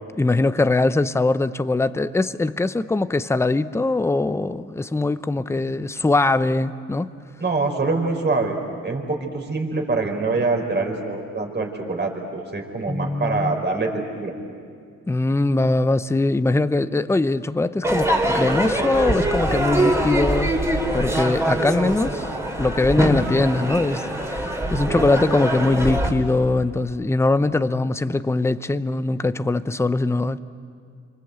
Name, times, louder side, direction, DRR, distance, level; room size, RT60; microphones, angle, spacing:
voice 1, 0.2-7.1 12.9-13.6 15.1-20.5 20.9-22.3 22.6-30.4, left 2 dB, 10° left, 13 dB, 0.7 m, -21 dB
voice 2, 7.4-8.6 8.8-14.3 24.9-25.1, right 3 dB, 35° right, 2 dB, 4.8 m, -25 dB
Crowd / Fireworks, 17.8-26.1, right 1 dB, 10° right, 3.2 m, -23 dB
28.5 x 25.0 x 8.1 m, 2.3 s
cardioid pair, 90°, 30 cm